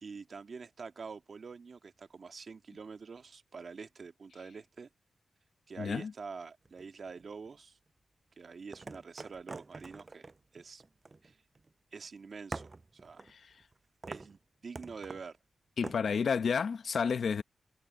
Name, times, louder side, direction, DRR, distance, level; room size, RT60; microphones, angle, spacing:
voice 1, 0.0-4.9 5.7-7.8 8.4-10.8 11.2-11.4 11.9-13.2 14.1-15.4, right 5 dB, 55° right, 1.7 m, -46 dB
voice 2, 5.8-6.1 13.3-13.6 15.8-17.4, left 6 dB, 70° left, 0.8 m, -31 dB
sound 1, 6.6-7.5 8.7-11.7 12.0-12.1 12.5-13.8 14.0-14.4 14.7-15.3 15.8-16.0, right 3 dB, 35° right, 7.9 m, -45 dB
wide cardioid pair, 90°, 0 cm